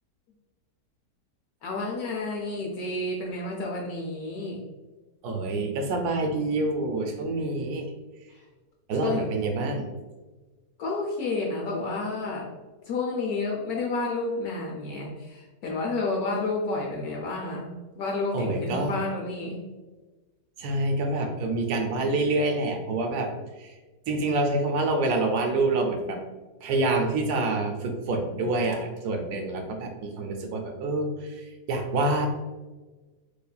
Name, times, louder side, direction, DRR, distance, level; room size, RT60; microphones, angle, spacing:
voice 1, 1.6-4.6 8.3-8.4 9.0-9.3 10.8-12.5 12.9-17.7 18.0-19.6, left 3 dB, 70° left, -1 dB, 1.0 m, -30 dB
voice 2, 5.2-7.9 8.9-9.9 18.3-18.9 20.6-23.3 23.6-23.7 24.1-26.2 26.6-32.3, right 2 dB, 75° right, 3 dB, 1.1 m, -27 dB
4.8 x 2.5 x 2.2 m, 1.2 s
omnidirectional pair, 1.8 m